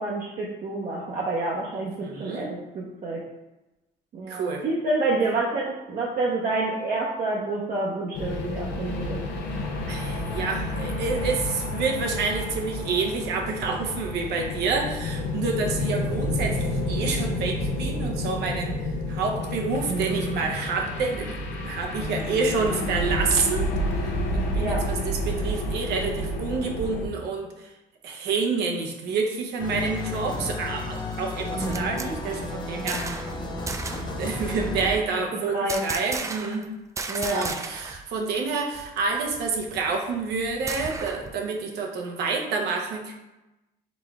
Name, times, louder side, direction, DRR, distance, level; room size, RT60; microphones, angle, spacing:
voice 1, 0.0-3.2 4.1-9.2 19.9-20.5 24.6-24.8 31.5-32.0 35.5-35.8 37.1-37.5, right 2 dB, 50° right, -4 dB, 0.8 m, -28 dB
voice 2, 2.0-2.5 4.3-4.6 9.8-18.7 19.1-21.3 21.6-23.7 24.0-27.7 28.0-33.0 34.1-36.7 37.3-43.1, right 4 dB, 80° right, 2 dB, 0.8 m, -28 dB
sound 1, 8.1-27.1, left 1 dB, 90° left, 0.7 m, -30 dB
sound 2, 29.6-35.0, left 2 dB, 25° left, 0.7 m, -33 dB
sound 3, 31.5-33.4 33.7-34.2 35.7-36.7 37.0-38.0 38.3-38.4 38.7-41.3, right 4 dB, 20° right, 0.3 m, -35 dB
4.1 x 3.2 x 3.5 m, 1.0 s
cardioid pair, 110°, 17 cm